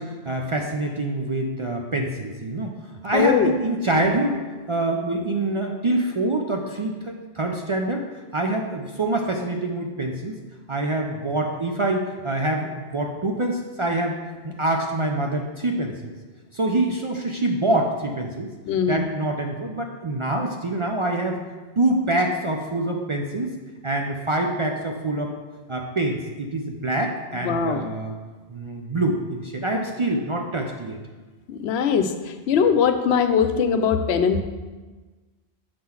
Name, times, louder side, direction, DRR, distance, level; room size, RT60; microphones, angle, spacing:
voice 1, 0.0-2.7 3.0-4.4 4.7-8.1 8.3-10.4 10.7-14.2 14.4-16.1 16.5-18.5 18.9-21.4 21.8-23.5 23.8-25.3 25.7-28.1 28.5-31.0, right 2 dB, 45° right, 2 dB, 0.4 m, -25 dB
voice 2, 3.1-3.5 18.7-19.0 27.4-27.9 31.5-34.4, left 6 dB, 85° left, 8 dB, 0.8 m, -21 dB
6.6 x 3.7 x 5.9 m, 1.3 s
omnidirectional pair, 1.1 m